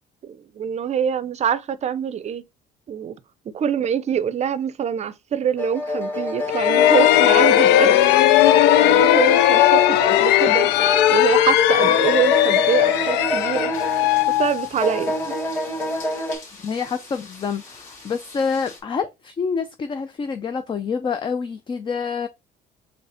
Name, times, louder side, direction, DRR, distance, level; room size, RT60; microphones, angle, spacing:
voice 1, 0.2-2.4 2.9-3.2 3.5-8.0 8.7-10.7 11.1-13.7 14.4-15.3, right 8 dB, 40° right, 0.6 m, -25 dB
sound 1, 5.6-11.4 11.8-14.5 14.8-16.4, left 1 dB, 10° left, 2.0 m, -28 dB
sound 2, 6.5-15.2, left 13 dB, 90° left, 0.4 m, -17 dB
sound 3, 13.7-18.8, left 3 dB, 50° left, 2.5 m, -44 dB
voice 2, 16.6-22.3, left 5 dB, 30° left, 0.5 m, -27 dB
4.1 x 3.2 x 4.1 m
cardioid pair, 110°, 17 cm